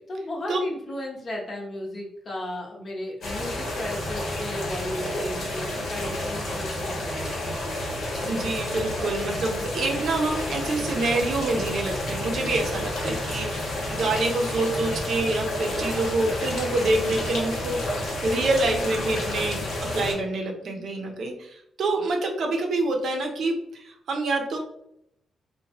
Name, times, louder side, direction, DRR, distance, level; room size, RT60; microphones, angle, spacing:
voice 1, 0.1-7.5, left 1 dB, 40° left, -1 dB, 0.7 m, -35 dB
sound 1, 3.2-20.1, left 1 dB, 70° left, 1.0 m, -30 dB
voice 2, 8.3-17.9 18.2-24.6, right 2 dB, 60° right, 3 dB, 0.5 m, -26 dB
2.8 x 2.1 x 2.9 m, 0.77 s
cardioid pair, 125°, 0 cm